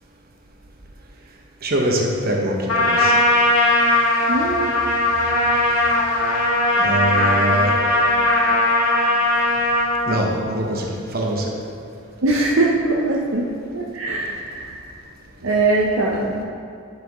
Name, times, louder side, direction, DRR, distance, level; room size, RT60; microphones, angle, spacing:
voice 1, 1.6-3.2 6.8-7.8 10.1-11.5, right 1 dB, 45° right, 0 dB, 1.0 m, -23 dB
Trumpet, 2.7-10.0, left 2 dB, 85° left, 1.5 m, -18 dB
voice 2, 4.3-4.8 12.2-14.8 15.4-16.4, right 2 dB, 65° right, -2 dB, 0.7 m, -21 dB
11.0 x 5.9 x 3.0 m, 2.5 s
head